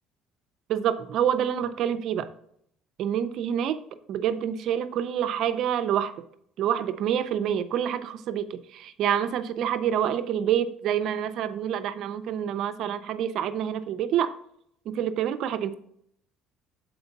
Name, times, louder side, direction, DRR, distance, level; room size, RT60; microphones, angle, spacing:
voice 1, 0.7-2.3 3.0-3.8 4.1-6.1 6.6-14.3 14.9-15.8, right 9 dB, 65° right, 11 dB, 0.5 m, -27 dB
6.9 x 4.4 x 3.9 m, 0.69 s
cardioid pair, 110°, 0 cm